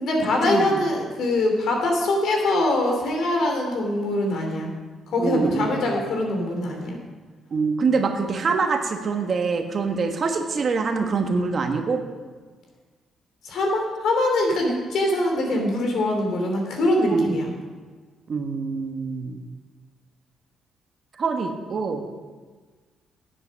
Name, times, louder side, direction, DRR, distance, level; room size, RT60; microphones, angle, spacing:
voice 1, 0.0-4.7 5.1-7.0 13.4-17.5, left 1 dB, 70° left, 1 dB, 2.9 m, -23 dB
voice 2, 5.2-5.7 7.5-12.0 17.1-17.4 18.3-19.4 21.2-22.0, right 4 dB, 45° right, 5 dB, 1.3 m, -24 dB
9.9 x 7.9 x 6.4 m, 1.4 s
cardioid pair, 90°, 0 cm